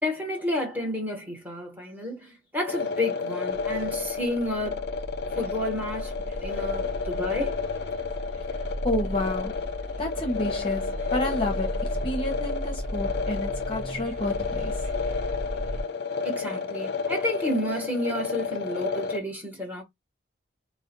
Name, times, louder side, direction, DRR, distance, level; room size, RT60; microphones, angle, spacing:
voice 1, 0.0-5.0 5.4-6.1 6.4-7.6 16.2-19.8, left 1 dB, 10° right, 1.1 m, -30 dB
sound 1, 2.7-19.2, left 5 dB, 65° left, 0.4 m, -31 dB
sound 2, 3.5-15.8, equal, 45° right, 0.5 m, -35 dB
voice 2, 8.5-9.6 10.0-14.9, left 1 dB, 30° left, 0.7 m, -30 dB
2.4 x 2.1 x 3.8 m
head